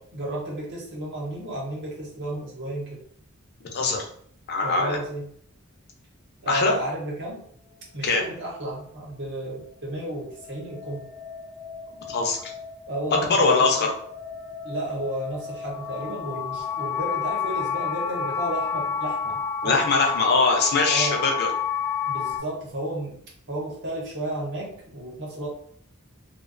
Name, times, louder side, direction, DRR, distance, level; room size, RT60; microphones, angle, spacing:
voice 1, 0.1-3.0 4.6-5.3 6.4-7.4 7.9-11.1 12.9-13.9 14.6-19.8 20.9-21.2 22.1-23.2 23.5-25.5, right 1 dB, 55° right, -3 dB, 0.9 m, -33 dB
voice 2, 3.7-4.1 4.5-5.0 6.5-6.7 8.0-8.2 12.1-12.5 13.3-13.9 19.6-21.5, left 4 dB, 50° left, 2 dB, 0.5 m, -22 dB
sound 1, 9.6-22.4, left 7 dB, 5° left, 0.6 m, -31 dB
2.3 x 2.2 x 2.4 m, 0.62 s
head